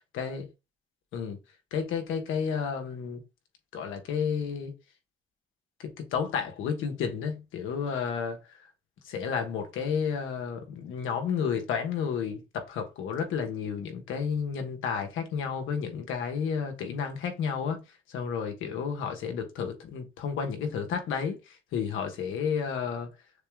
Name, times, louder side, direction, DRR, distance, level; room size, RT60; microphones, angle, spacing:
voice 1, 0.1-0.5 1.1-1.4 1.7-3.2 3.7-4.7 5.8-8.4 9.0-17.8 18.1-23.1, left 6 dB, 85° left, 1.2 m, -31 dB
6.6 x 2.3 x 3.5 m
cardioid pair, 90°, 20 cm